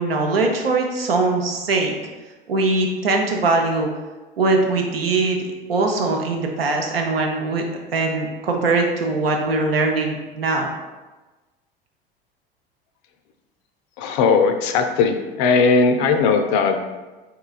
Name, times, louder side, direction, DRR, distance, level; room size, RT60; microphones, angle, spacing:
voice 1, 0.0-1.9 2.5-3.9 4.4-5.4 5.7-7.6 7.9-10.7, right 3 dB, 75° right, 2 dB, 0.6 m, -21 dB
voice 2, 14.0-16.8, left 4 dB, 45° left, 7 dB, 0.4 m, -18 dB
3.8 x 3.8 x 2.3 m, 1.2 s
figure-of-eight pair, 75°, 29 cm